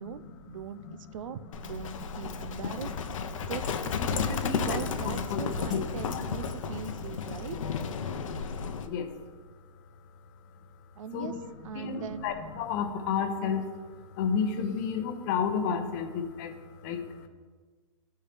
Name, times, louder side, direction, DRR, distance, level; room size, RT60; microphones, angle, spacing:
voice 1, 0.0-0.8 1.1-2.9 3.4-7.6 11.0-11.3 11.6-12.3, right 8 dB, 80° right, 13 dB, 0.5 m, -40 dB
Livestock farm animals working animals, 1.5-8.9, left 5 dB, 85° left, 0.7 m, -33 dB
voice 2, 2.1-3.0 3.9-5.4 5.7-6.7 7.0-7.3 8.0-8.4 8.8-9.2 11.1-11.4 11.7-17.3, left 6 dB, 40° left, 6 dB, 0.8 m, -33 dB
13.0 x 4.4 x 3.4 m, 1.4 s
supercardioid pair, 160°, 16 cm